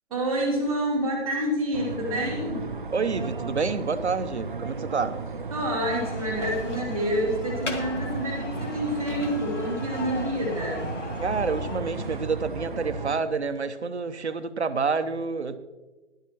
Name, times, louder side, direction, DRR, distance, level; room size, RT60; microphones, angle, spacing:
voice 1, 0.1-2.7 5.5-10.9, equal, ahead, -18 dB, 1.3 m, -28 dB
sound 1, 1.7-13.2, right 4 dB, 45° right, 0.6 m, -35 dB
voice 2, 2.9-5.2 11.2-15.6, right 4 dB, 70° right, 11 dB, 1.0 m, -28 dB
sound 2, 5.8-12.3, left 2 dB, 90° left, 2.1 m, -38 dB
15.0 x 11.5 x 3.0 m, 1.2 s
figure-of-eight pair, 165°, 35 cm